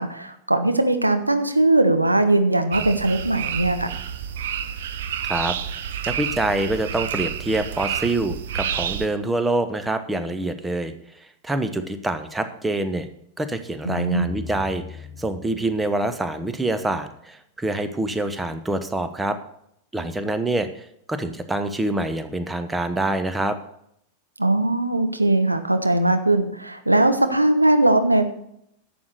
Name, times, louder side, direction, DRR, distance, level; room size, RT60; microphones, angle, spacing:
voice 1, 0.0-3.9 13.8-14.3 24.4-28.3, right 2 dB, 85° right, 7 dB, 1.0 m, -20 dB
sound 1, 2.7-9.1, right 9 dB, 60° right, 0.9 m, -29 dB
voice 2, 6.1-13.1 13.4-19.4 19.9-23.6, right 2 dB, 10° right, 9 dB, 1.1 m, -26 dB
sound 2, 14.2-17.3, left 6 dB, 35° left, 2.8 m, -40 dB
11.0 x 7.8 x 6.5 m, 0.73 s
figure-of-eight pair, 90°, 0 cm